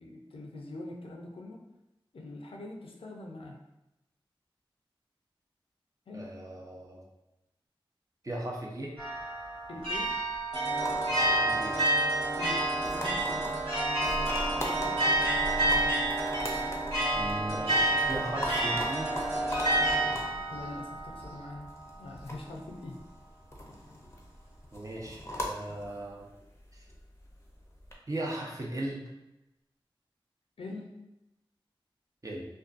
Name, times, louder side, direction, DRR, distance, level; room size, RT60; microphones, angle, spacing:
voice 1, 0.0-1.6 2.1-3.6 6.1-6.3 9.7-10.1 12.3-13.6 14.0-16.0 20.5-21.7 22.0-23.0 30.6-30.9, left 2 dB, 80° left, 0 dB, 0.5 m, -44 dB
voice 2, 6.1-7.0 8.2-8.9 11.4-11.8 17.1-19.1 24.7-26.3 26.7-26.8 28.1-29.0 32.2-32.5, right 1 dB, 35° right, -2 dB, 0.6 m, -37 dB
sound 1, 9.0-21.9, right 2 dB, 75° right, 1.0 m, -30 dB
sound 2, 10.5-20.1, right 1 dB, ahead, 1.0 m, -35 dB
sound 3, 10.8-27.9, equal, 30° left, 0.5 m, -40 dB
2.5 x 2.2 x 2.4 m, 0.93 s
cardioid pair, 40°, 9 cm